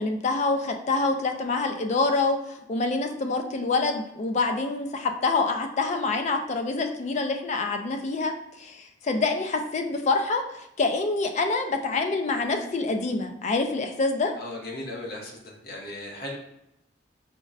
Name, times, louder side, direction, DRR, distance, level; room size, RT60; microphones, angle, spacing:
voice 1, 0.0-14.3, left 3 dB, 40° left, 5 dB, 0.3 m, -26 dB
voice 2, 14.4-16.4, left 1 dB, 55° left, -1 dB, 0.8 m, -37 dB
5.2 x 2.1 x 2.4 m, 0.81 s
head